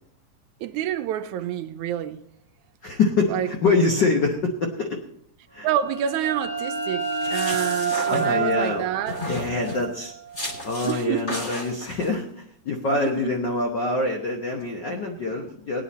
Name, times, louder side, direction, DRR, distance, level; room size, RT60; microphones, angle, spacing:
voice 1, 0.6-2.2 3.3-3.5 5.6-9.2 10.8-11.4 12.9-13.3, right 10 dB, 80° right, 2.0 m, -28 dB
voice 2, 2.8-5.0 5.5-5.7 8.1-8.9 9.3-10.1 10.6-15.8, left 3 dB, 70° left, 1.0 m, -25 dB
sound 1, 5.7-11.1, right 5 dB, 45° left, 0.5 m, -29 dB
sound 2, 7.0-8.7 9.1-9.9 10.3-11.0 11.3-12.1, left 1 dB, 25° left, 1.3 m, -34 dB
18.0 x 9.4 x 4.1 m
omnidirectional pair, 3.5 m